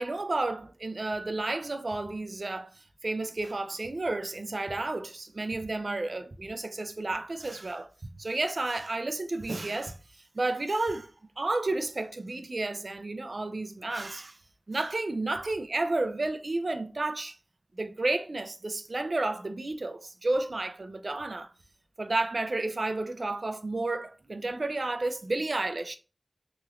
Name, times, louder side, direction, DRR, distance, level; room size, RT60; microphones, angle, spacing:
voice 1, 0.0-2.7 3.0-7.9 8.2-10.0 10.3-11.1 11.4-14.4 14.7-17.4 17.8-21.5 22.0-26.0, right 2 dB, 55° right, 0.4 m, -31 dB
3.0 x 3.0 x 2.4 m
wide cardioid pair, 70°, 0 cm